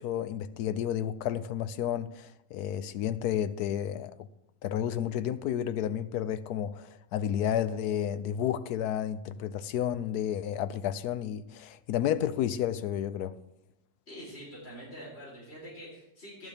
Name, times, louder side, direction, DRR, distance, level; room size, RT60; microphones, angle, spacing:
voice 1, 0.0-4.1 4.6-13.3, left 10 dB, 85° left, 1.2 m, -31 dB
voice 2, 14.1-16.5, equal, 40° left, 4.2 m, -45 dB
14.0 x 11.5 x 3.5 m
omnidirectional pair, 1.6 m